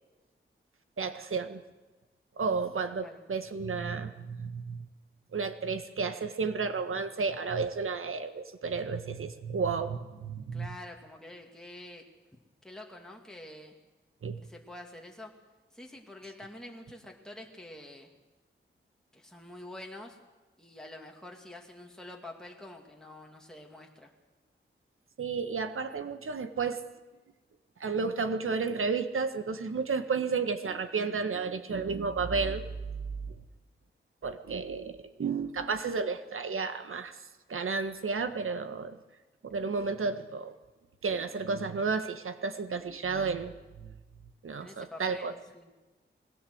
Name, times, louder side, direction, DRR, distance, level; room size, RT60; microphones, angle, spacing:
voice 1, 1.0-1.6 2.4-4.8 5.3-10.7 14.2-14.4 25.2-26.8 27.8-33.4 34.2-37.2 37.5-39.0 39.4-40.6 41.0-43.9 44.4-45.3, right 4 dB, 75° right, 9 dB, 1.6 m, -32 dB
voice 2, 10.5-12.0 12.3-13.7 14.4-15.3 15.7-18.1 19.1-20.2 20.6-24.1 44.6-45.7, left 1 dB, 5° left, 1 dB, 2.5 m, -47 dB
21.0 x 17.0 x 8.1 m, 1.2 s
wide cardioid pair, 100°, 21 cm